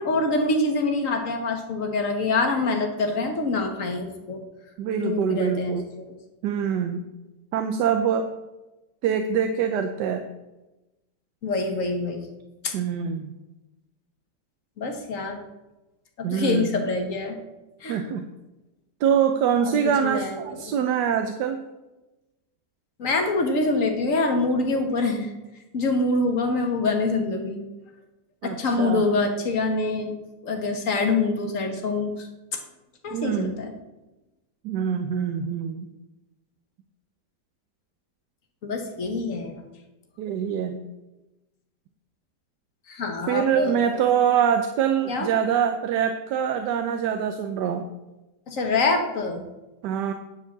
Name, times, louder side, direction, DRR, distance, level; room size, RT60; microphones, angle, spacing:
voice 1, 0.0-4.4 5.0-6.0 11.4-12.2 12.6-12.7 14.8-15.4 16.2-17.4 17.8-18.0 19.6-20.6 23.0-25.3 25.7-27.6 28.4-30.2 30.4-32.3 32.5-32.6 33.0-33.7 38.6-39.6 42.9-43.8 45.1-45.3 48.5-49.4, left 3 dB, 50° left, 3 dB, 1.7 m, -25 dB
voice 2, 4.8-5.8 6.4-7.0 7.5-8.3 9.0-10.2 12.7-13.3 16.2-16.7 17.9-18.2 19.0-21.6 28.4-29.1 33.1-33.5 34.6-35.9 40.2-40.8 43.3-47.9 49.8-50.1, right 8 dB, 80° right, 7 dB, 1.3 m, -24 dB
9.9 x 4.5 x 7.3 m, 1.0 s
omnidirectional pair, 1.8 m